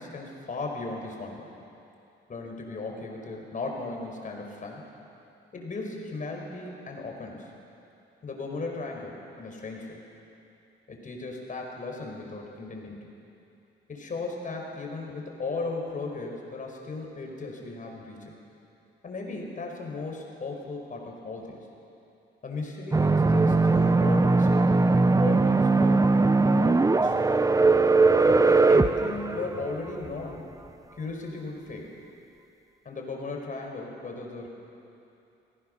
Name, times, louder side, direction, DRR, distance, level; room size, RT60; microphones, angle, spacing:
voice 1, 0.0-1.5 2.3-4.9 5.5-7.5 8.2-10.0 10.9-13.1 13.9-18.4 19.0-21.6 22.4-24.6 25.2-26.1 26.4-27.2 28.2-30.5 31.0-32.0 32.9-34.5, left 3 dB, 40° left, 1 dB, 5.2 m, -36 dB
sound 1, 22.9-30.1, right 3 dB, 15° right, 0.7 m, -20 dB
28.5 x 17.5 x 6.7 m, 2.7 s
cardioid pair, 90°, 20 cm